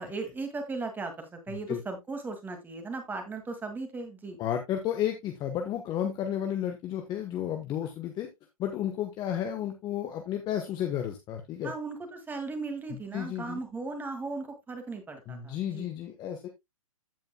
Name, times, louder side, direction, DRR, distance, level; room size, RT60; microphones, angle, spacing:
voice 1, 0.0-4.4 11.6-15.9, right 3 dB, 10° right, 6 dB, 2.2 m, -37 dB
voice 2, 4.4-8.3 8.6-11.7 13.1-13.6 15.3-16.5, left 10 dB, 25° left, 5 dB, 1.2 m, -32 dB
15.0 x 5.2 x 2.3 m, 0.19 s
hypercardioid pair, 130°, 18 cm